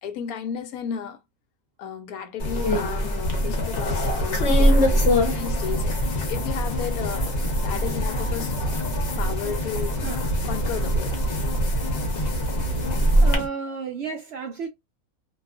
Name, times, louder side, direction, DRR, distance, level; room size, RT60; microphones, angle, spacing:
voice 1, 0.0-1.2 1.8-7.3 7.6-8.6 8.9-10.0 10.4-11.2, left 7 dB, 85° left, 1.1 m, -34 dB
sound 1, 2.4-13.4, equal, 60° left, 1.1 m, -23 dB
sound 2, 4.6-13.5, right 1 dB, 40° left, 0.7 m, -32 dB
voice 2, 13.2-14.7, right 5 dB, 65° right, 0.6 m, -32 dB
2.8 x 2.3 x 2.3 m
omnidirectional pair, 1.5 m